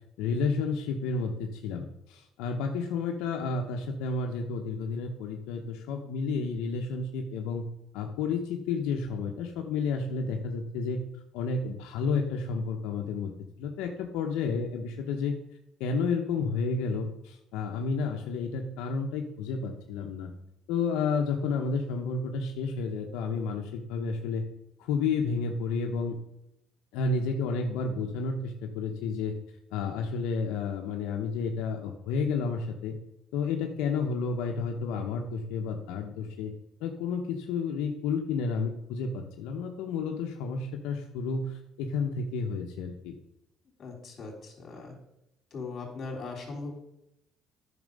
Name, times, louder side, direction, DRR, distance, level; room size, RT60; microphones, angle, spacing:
voice 1, 0.2-7.6 7.9-11.0 11.3-13.3 13.6-15.3 15.8-20.3 20.7-24.4 24.8-26.1 26.9-29.3 29.7-32.9 33.3-36.5 36.8-43.1, left 4 dB, 90° left, 2 dB, 0.9 m, -31 dB
voice 2, 43.8-45.0 45.5-46.7, left 3 dB, 40° left, 1 dB, 3.4 m, -39 dB
9.5 x 6.0 x 5.3 m, 0.85 s
cardioid pair, 110°, 0 cm